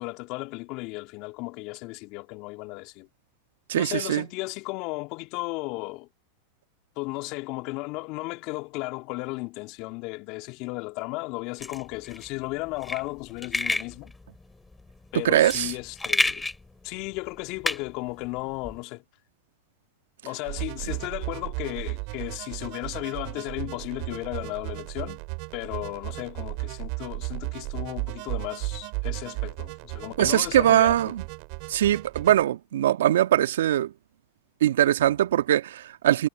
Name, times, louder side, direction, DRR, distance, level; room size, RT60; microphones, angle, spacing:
voice 1, 0.0-3.1 3.8-6.1 7.0-14.1 15.1-16.5 16.8-19.0 20.2-25.2 25.5-31.1, left 24 dB, 50° left, 2.2 m, -35 dB
voice 2, 3.7-4.3 15.2-15.7 30.2-31.2 31.7-33.9 34.6-36.3, right 12 dB, 75° right, 1.4 m, -21 dB
sound 1, 11.6-18.8, left 2 dB, 10° left, 5.7 m, -31 dB
sound 2, 20.5-32.4, right 35 dB, 55° right, 3.2 m, -35 dB
hypercardioid pair, 100°, 0 cm